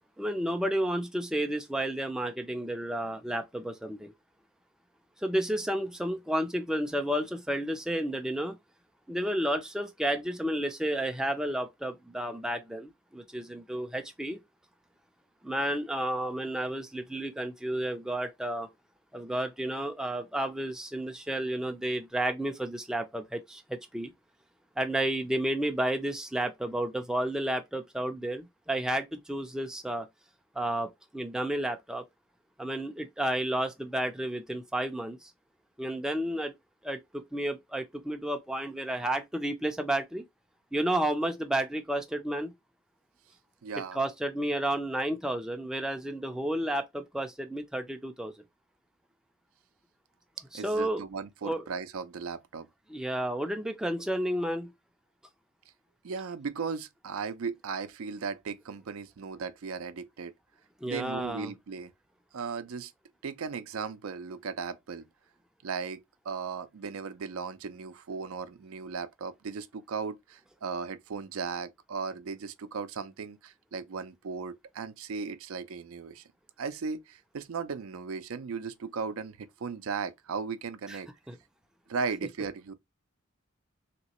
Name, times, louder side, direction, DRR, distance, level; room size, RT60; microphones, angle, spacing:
voice 1, 0.2-4.1 5.2-8.6 9.1-14.4 15.4-18.7 19.1-24.1 24.8-30.1 30.6-30.9 31.1-32.0 32.6-35.3 35.8-36.5 36.8-40.2 40.7-42.5 43.9-48.3 50.5-51.0 51.4-51.7 52.9-54.7 60.8-61.5 80.9-81.0 81.3-81.4, right 1 dB, 5° right, 0.4 m, -31 dB
voice 2, 43.6-44.0 50.5-52.7 56.0-60.3 60.8-61.9 62.3-62.9 63.2-65.0 65.6-76.2 76.6-81.1 81.9-82.7, right 5 dB, 80° right, 0.5 m, -36 dB
3.1 x 2.9 x 2.9 m
head